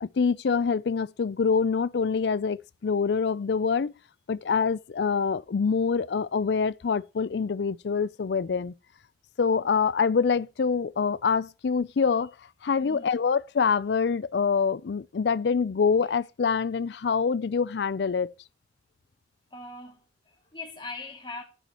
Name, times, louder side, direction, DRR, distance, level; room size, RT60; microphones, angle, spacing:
voice 1, 0.0-3.9 4.3-8.7 9.4-12.3 12.6-18.3, left 5 dB, 70° left, 0.4 m, -25 dB
voice 2, 12.8-13.2 19.5-21.4, left 3 dB, 25° left, 2.3 m, -41 dB
10.5 x 9.2 x 3.0 m
head